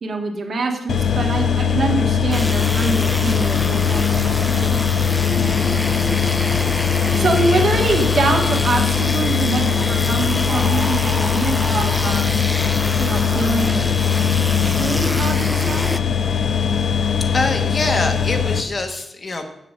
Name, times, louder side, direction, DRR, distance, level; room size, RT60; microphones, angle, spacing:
voice 1, 0.0-4.8 7.2-12.4 13.0-13.9 14.6-15.9, right 3 dB, 50° right, 3 dB, 1.7 m, -24 dB
sound 1, 0.9-18.6, left 7 dB, 70° left, 0.8 m, -20 dB
sound 2, 2.3-16.0, left 1 dB, 5° left, 0.3 m, -27 dB
voice 2, 5.5-5.9 7.5-7.6 16.7-16.9 17.3-19.5, left 2 dB, 35° left, 6 dB, 1.2 m, -25 dB
7.5 x 6.8 x 7.4 m, 0.81 s
wide cardioid pair, 145°, 0 cm